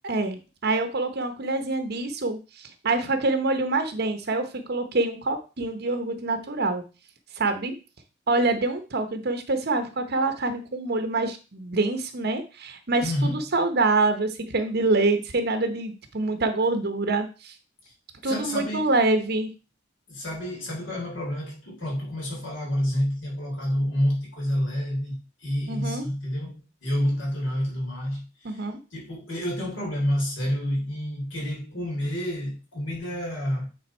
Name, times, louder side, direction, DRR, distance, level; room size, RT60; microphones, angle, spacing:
voice 1, 0.0-6.8 7.4-7.7 8.3-17.5 18.2-19.5 25.7-26.1 28.4-28.8, right 2 dB, 50° right, 0.9 m, -26 dB
voice 2, 13.0-13.4 17.8-17.9 18.2-18.9 20.1-28.7 28.9-33.7, equal, 65° left, 3.3 m, -29 dB
8.8 x 4.0 x 4.4 m
head